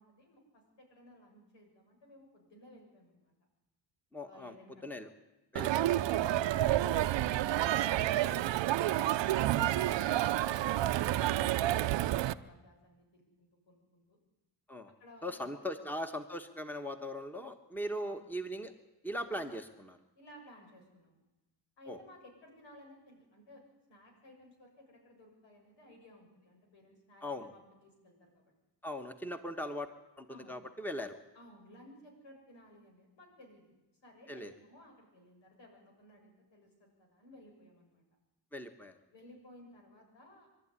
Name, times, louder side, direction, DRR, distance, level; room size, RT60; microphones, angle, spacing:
voice 1, 0.0-3.3 4.2-4.8 6.1-8.1 8.7-14.2 15.0-15.7 18.0-18.2 20.2-21.2 21.8-23.6 23.9-28.5 30.3-30.6 31.4-33.7 34.0-38.0 39.1-40.6, left 1 dB, 80° left, 2 dB, 7.1 m, -58 dB
voice 2, 4.1-4.5 4.8-5.1 5.5-5.9 14.7-14.9 15.2-18.7 19.0-20.0 21.9-22.0 27.2-27.5 28.8-29.9 30.2-31.2 34.3-34.5 38.5-38.9, equal, 5° left, 7 dB, 1.4 m, -39 dB
Crowd, 5.6-12.3, right 13 dB, 85° right, 0.7 m, -29 dB
24.5 x 12.5 x 9.8 m, 1.0 s
cardioid pair, 110°, 43 cm